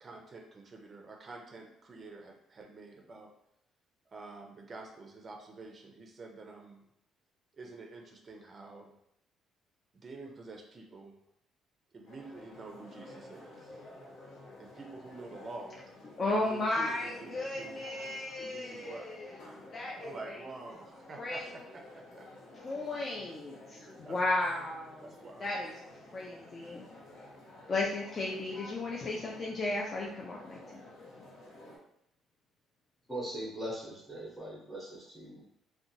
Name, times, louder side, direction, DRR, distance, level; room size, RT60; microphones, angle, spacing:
voice 1, 0.0-3.3 4.1-6.9 7.5-8.9 9.9-11.1 11.9-13.8 14.6-15.8 16.2-17.8 18.4-19.3 20.0-22.3 24.0-24.5 25.0-25.5, right 3 dB, 30° right, 2 dB, 0.4 m, -48 dB
sound 1, 12.1-31.8, left 2 dB, 80° left, 0.8 m, -52 dB
voice 2, 16.2-19.3 19.7-20.3 21.2-21.4 22.5-25.1 25.4-25.7 26.1-26.9 27.7-30.6, left 2 dB, 30° left, -3 dB, 0.4 m, -34 dB
voice 3, 33.1-35.5, right 1 dB, ahead, -5 dB, 0.7 m, -40 dB
2.7 x 2.2 x 2.7 m, 0.77 s
cardioid pair, 130°, 0 cm